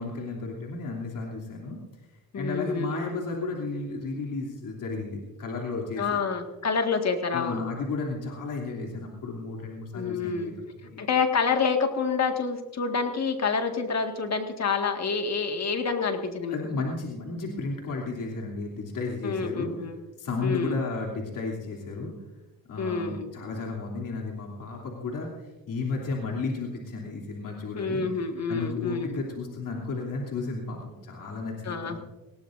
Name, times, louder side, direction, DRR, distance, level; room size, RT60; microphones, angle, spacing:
voice 1, 0.0-1.8 2.3-6.2 7.3-11.0 16.5-19.7 20.2-22.1 22.7-25.3 25.7-28.1 28.5-32.0, left 3 dB, 65° left, -2 dB, 3.1 m, -33 dB
voice 2, 2.3-3.1 6.0-7.6 9.9-10.6 11.0-16.6 19.2-20.0 20.4-20.8 22.8-23.2 27.8-29.2 31.6-32.0, left 5 dB, 50° left, 5 dB, 1.9 m, -28 dB
19.0 x 18.0 x 2.6 m, 1.1 s
cardioid pair, 85°, 34 cm